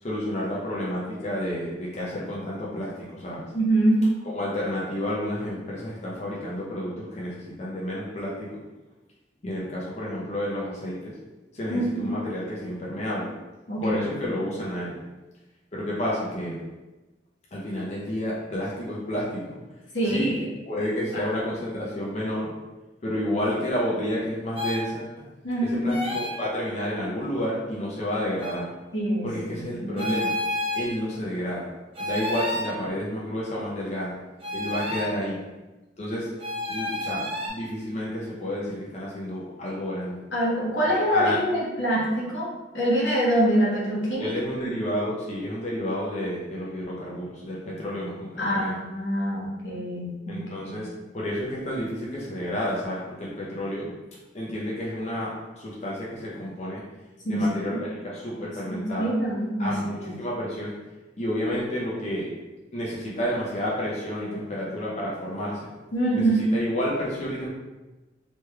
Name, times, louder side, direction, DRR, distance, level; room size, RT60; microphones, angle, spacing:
voice 1, 0.0-3.5 4.3-8.6 9.4-11.1 11.5-13.3 13.8-15.0 15.7-16.6 17.5-19.5 20.0-20.4 20.7-22.5 23.0-25.1 25.7-28.7 29.2-30.3 30.7-31.7 32.0-34.1 34.5-35.4 36.0-36.3 36.7-40.2 40.9-41.4 44.2-48.8 50.3-50.9 51.1-53.9 54.3-56.8 57.2-59.1 59.6-60.7 61.2-62.3 62.7-65.7 66.1-67.5, equal, 40° left, -5 dB, 0.5 m, -30 dB
voice 2, 3.5-4.0 11.7-12.1 13.7-14.1 19.9-20.4 21.1-21.4 25.4-25.9 28.9-29.3 29.6-30.1 40.3-42.5 42.7-44.3 48.4-50.8 57.2-57.8 58.7-59.7 60.0-60.1 65.9-66.5, right 1 dB, 85° left, -5 dB, 1.0 m, -25 dB
sound 1, 24.6-24.8 25.9-26.4 28.4-28.6 30.0-30.9 31.9-32.7 34.4-35.1 36.4-37.5, left 1 dB, 30° right, 0.6 m, -30 dB
3.2 x 3.1 x 2.2 m, 1.1 s
head